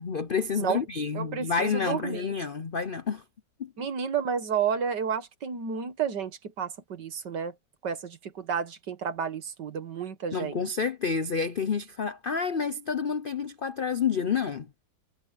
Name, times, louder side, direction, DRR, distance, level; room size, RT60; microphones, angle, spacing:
voice 1, 0.0-3.2 3.6-3.7 10.3-14.7, left 6 dB, 75° left, 0.4 m, -29 dB
voice 2, 1.1-2.3 3.8-7.5 7.8-10.6, right 7 dB, 65° right, 2.2 m, -31 dB
omnidirectional pair, 2.0 m